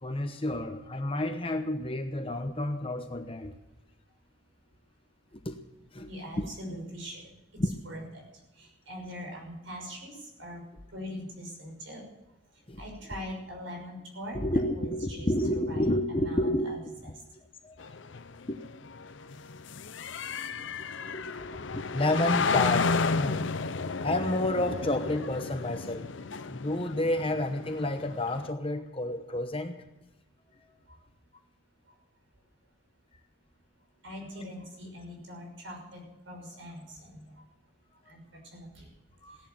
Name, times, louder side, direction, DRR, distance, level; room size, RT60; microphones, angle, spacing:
voice 1, 0.0-3.5 5.4-5.6 5.9-6.1 6.4-6.5 7.6-7.7 12.7-12.8 14.3-16.9 17.6-17.7 18.5-18.6 21.1-23.7 24.0-26.1 26.5-29.8 39.2-39.4, left 1 dB, 30° left, 6 dB, 1.0 m, -30 dB
voice 2, 6.1-7.3 7.8-8.2 8.6-10.6 10.9-12.0 12.8-16.8 17.0-17.1 20.3-20.4 21.0-21.1 34.0-36.0 36.3-37.2 38.1-38.2 38.5-38.9, equal, 75° right, 1 dB, 6.1 m, -42 dB
sound 1, 17.8-28.5, left 4 dB, 70° left, 0.7 m, -32 dB
16.5 x 11.0 x 7.7 m, 0.96 s
head